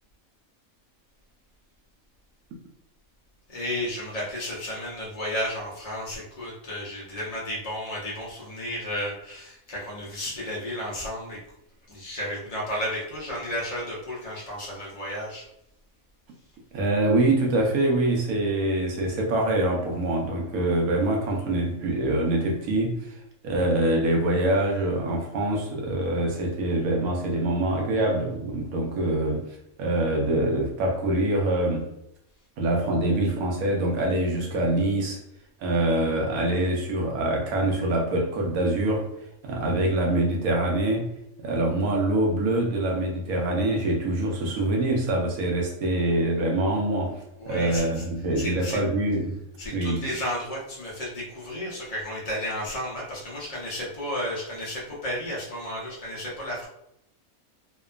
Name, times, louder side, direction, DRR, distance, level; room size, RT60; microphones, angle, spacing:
voice 1, 3.5-11.4 11.9-15.5 47.4-48.0 48.4-48.8 49.6-56.7, equal, 75° left, -5 dB, 0.3 m, -33 dB
voice 2, 16.7-23.1 23.4-29.4 29.8-31.9 32.6-35.2 35.6-39.1 39.4-41.1 41.4-47.2 47.5-49.4 49.7-50.0, right 1 dB, 85° right, 0 dB, 1.1 m, -24 dB
2.9 x 2.1 x 2.3 m, 0.79 s
omnidirectional pair, 1.5 m